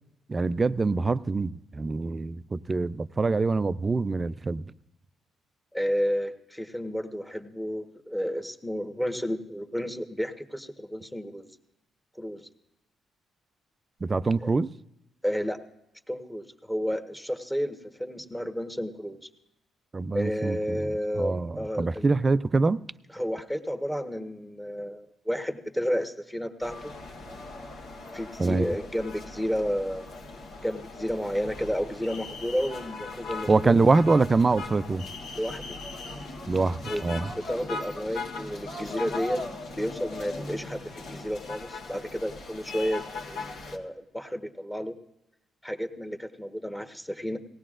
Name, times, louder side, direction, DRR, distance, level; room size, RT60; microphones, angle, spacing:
voice 1, 0.3-4.6 14.0-14.7 19.9-20.8 21.1-22.8 28.4-28.7 33.5-35.1 36.5-37.3, right 3 dB, 30° right, 0.4 m, -24 dB
voice 2, 5.7-11.5 12.2-12.5 14.4-14.5 15.2-15.6 16.1-19.3 20.1-22.1 23.1-26.9 28.1-30.1 30.6-33.7 35.4-35.8 36.9-37.0 37.4-39.4 39.8-45.0 45.6-47.4, equal, 5° left, 1.2 m, -31 dB
sound 1, 26.6-43.8, left 3 dB, 80° left, 1.8 m, -39 dB
19.0 x 16.5 x 2.5 m
cardioid pair, 90°, 0 cm